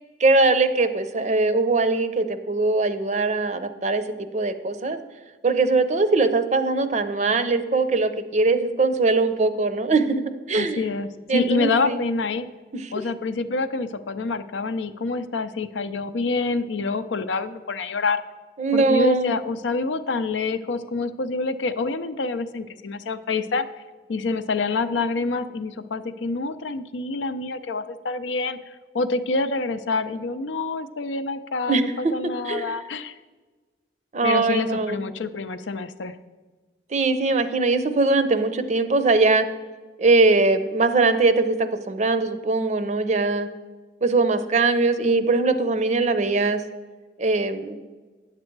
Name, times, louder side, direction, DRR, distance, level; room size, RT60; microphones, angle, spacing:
voice 1, 0.2-4.0 4.3-5.0 5.4-10.2 10.5-10.8 11.3-12.0 12.7-12.9 18.6-19.3 31.7-32.1 32.5-32.8 34.1-35.0 36.9-39.5 40.0-41.6 41.9-43.5 44.0-46.6 47.2-47.8, right 3 dB, 40° right, 11 dB, 0.5 m, -21 dB
voice 2, 10.5-12.5 12.9-18.2 18.7-23.7 24.1-33.1 34.2-36.2, left 3 dB, 85° left, 11 dB, 0.5 m, -27 dB
9.6 x 7.5 x 4.6 m, 1.3 s
head